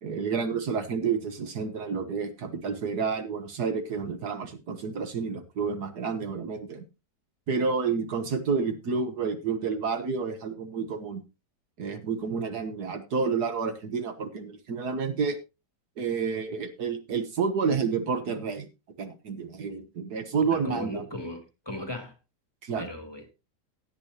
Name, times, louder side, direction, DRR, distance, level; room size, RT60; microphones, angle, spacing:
voice 1, 0.0-6.8 7.5-11.2 11.8-15.4 16.0-18.7 19.0-21.0 22.6-22.9, right 5 dB, 65° right, 1.6 m, -30 dB
voice 2, 20.5-22.1 22.8-23.2, left 1 dB, 15° left, 2.3 m, -37 dB
17.0 x 8.8 x 2.8 m
omnidirectional pair, 1.8 m